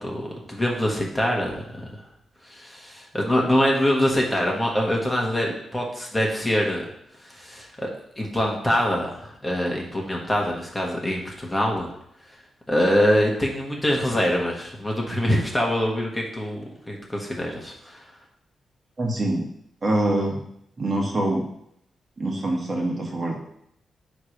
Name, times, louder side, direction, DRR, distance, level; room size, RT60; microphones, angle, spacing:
voice 1, 0.0-1.9 2.5-6.8 7.3-7.9 8.2-11.9 12.7-18.0, equal, 15° left, -1 dB, 1.6 m, -24 dB
voice 2, 19.0-19.4 19.8-20.4 20.8-21.5 22.2-23.3, right 1 dB, 35° right, -1 dB, 1.5 m, -24 dB
9.5 x 3.3 x 5.0 m, 0.74 s
cardioid pair, 105°, 0 cm